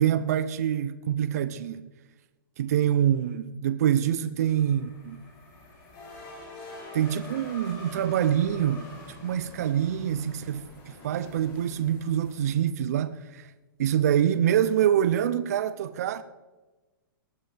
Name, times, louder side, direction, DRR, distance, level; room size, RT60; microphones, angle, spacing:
voice 1, 0.0-1.9 2.6-5.2 6.9-8.9 9.2-13.5 13.8-16.2, right 10 dB, 45° right, 0.5 m, -25 dB
sound 1, 4.4-12.5, left 2 dB, 20° left, 3.2 m, -46 dB
19.0 x 10.5 x 3.4 m
hypercardioid pair, 170°, 12 cm